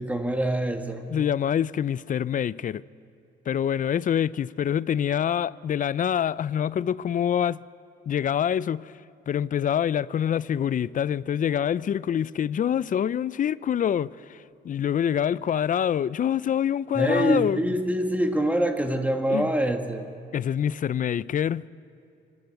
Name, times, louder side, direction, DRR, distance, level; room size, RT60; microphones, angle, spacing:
voice 1, 0.0-1.0 16.9-20.1, right 1 dB, 5° right, 1.4 m, -25 dB
voice 2, 1.1-2.8 3.5-7.6 8.1-8.9 9.3-17.6 19.3-19.5 20.3-21.7, left 9 dB, 40° left, 0.4 m, -25 dB
25.5 x 12.0 x 8.4 m
cardioid pair, 90°, 20 cm